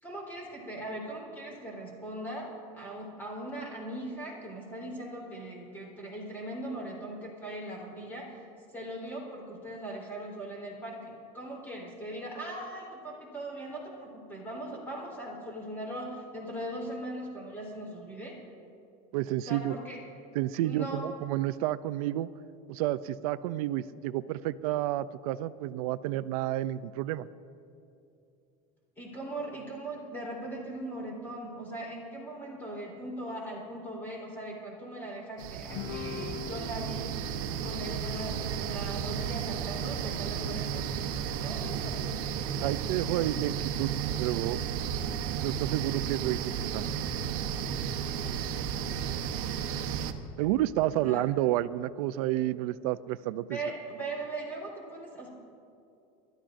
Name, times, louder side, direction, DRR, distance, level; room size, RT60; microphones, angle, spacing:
voice 1, 0.0-8.4 8.7-18.4 19.5-20.0 20.6-21.1 29.0-37.2 37.6-40.9 41.3-42.3 50.2-50.5 51.0-51.2 53.5-55.3, right 1 dB, 10° left, -4 dB, 3.6 m, -39 dB
voice 2, 19.1-19.7 20.3-22.3 22.7-27.3 42.6-43.9 44.2-44.6 45.0-45.1 45.4-46.9 50.4-53.6, right 14 dB, 85° right, 14 dB, 0.4 m, -30 dB
sound 1, 35.4-50.1, right 8 dB, 65° right, 0.9 m, -33 dB
Guitar, 35.7-40.3, left 6 dB, 55° left, 0.7 m, -44 dB
30.0 x 13.0 x 2.6 m, 2.6 s
cardioid pair, 170°, 18 cm